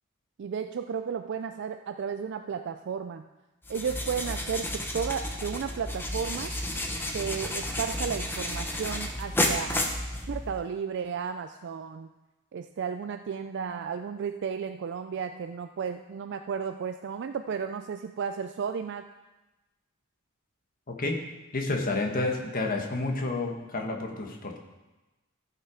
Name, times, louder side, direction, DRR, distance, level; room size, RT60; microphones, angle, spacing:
voice 1, 0.4-3.3 3.7-6.5 7.1-9.9 10.3-12.1 12.5-19.1, right 6 dB, 55° right, 8 dB, 0.4 m, -33 dB
sound 1, 3.6-10.7, left 1 dB, 10° left, 0.9 m, -32 dB
voice 2, 20.9-21.2 21.5-24.6, left 2 dB, 40° left, 2 dB, 1.3 m, -30 dB
15.0 x 5.7 x 5.0 m, 1.1 s
head